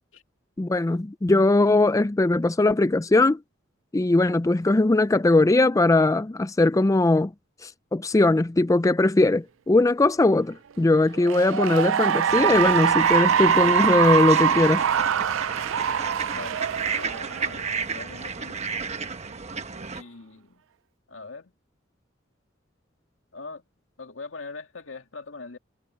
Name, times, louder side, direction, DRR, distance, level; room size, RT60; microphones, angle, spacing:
voice 1, 0.6-3.4 3.9-7.3 7.6-14.9, left 2 dB, 15° left, 0.4 m, -20 dB
Cheering / Applause, 11.1-17.8, right 8 dB, 85° right, 0.4 m, -23 dB
sound 1, 12.3-20.0, right 5 dB, 35° right, 1.2 m, -33 dB
voice 2, 16.3-16.6 16.9-18.7 19.9-20.6 21.1-21.5 23.3-23.6 24.0-25.6, left 3 dB, 85° left, 2.2 m, -41 dB
head